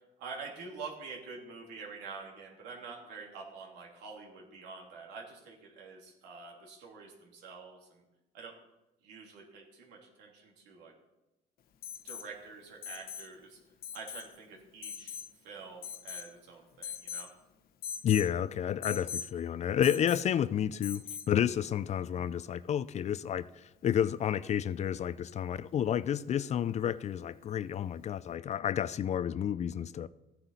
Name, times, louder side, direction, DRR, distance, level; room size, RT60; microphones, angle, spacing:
voice 1, 0.2-8.0 8.3-8.5 9.0-10.9 12.0-13.6 13.9-15.2 15.4-17.3, right 4 dB, 90° right, 3.0 m, -47 dB
Alarm, 11.8-12.3 12.8-13.3 13.8-14.3 14.8-15.3 15.8-16.3 16.8-17.3 17.8-18.3 18.8-19.3 19.8-20.3 20.8-21.3 23.1-23.2, left 8 dB, 65° left, 0.9 m, -41 dB
voice 2, 18.0-23.5 23.8-30.1, left 9 dB, 40° left, 0.4 m, -30 dB
14.5 x 9.8 x 4.1 m
cardioid pair, 110°, 17 cm